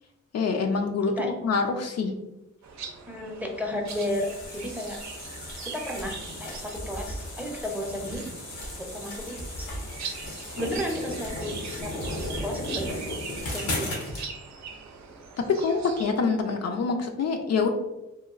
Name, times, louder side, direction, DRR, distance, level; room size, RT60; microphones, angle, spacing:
voice 1, 0.3-2.1 15.6-17.7, left 4 dB, 60° left, 4 dB, 0.4 m, -26 dB
sound 1, 2.6-16.1, right 5 dB, 65° right, 0.5 m, -42 dB
voice 2, 3.1-5.0 5.6-8.2 8.8-9.8 10.5-11.9 12.4-13.1 13.5-13.9, left 1 dB, 5° right, 1 dB, 0.6 m, -33 dB
sound 2, 3.9-14.3, left 1 dB, 85° left, 0.8 m, -36 dB
3.0 x 2.2 x 2.4 m, 0.97 s
cardioid pair, 50°, 30 cm